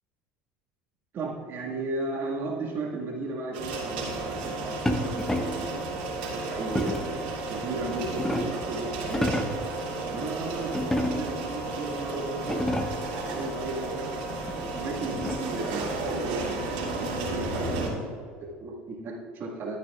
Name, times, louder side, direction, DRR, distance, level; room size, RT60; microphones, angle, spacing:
voice 1, 1.1-7.1 7.5-9.7 10.1-12.6 13.2-19.8, right 2 dB, 50° right, -1 dB, 1.9 m, -35 dB
sound 1, 3.5-17.9, right 2 dB, 85° right, 2.6 m, -33 dB
sound 2, 4.9-5.7 6.7-7.2 7.8-8.7 9.0-9.7 10.7-11.4 12.0-12.1 12.4-13.1 14.5-15.6, left 1 dB, 10° left, 0.9 m, -30 dB
13.0 x 9.4 x 2.5 m, 2.1 s
supercardioid pair, 90°, 5 cm